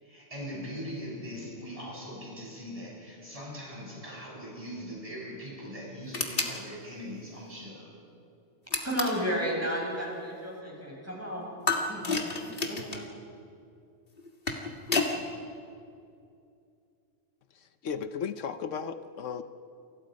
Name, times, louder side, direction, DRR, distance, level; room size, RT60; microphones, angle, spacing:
voice 1, 0.0-7.9, equal, 30° right, -4 dB, 7.7 m, -41 dB
sound 1, 6.1-6.6 8.7-9.3 11.7-13.1 14.2-15.2, left 3 dB, 50° left, 2.1 m, -30 dB
voice 2, 8.8-12.3 12.7-13.0, equal, 10° right, -3 dB, 6.7 m, -33 dB
voice 3, 17.8-19.4, left 6 dB, 80° left, 10 dB, 1.1 m, -34 dB
29.0 x 25.0 x 5.3 m, 2.5 s
omnidirectional pair, 1.3 m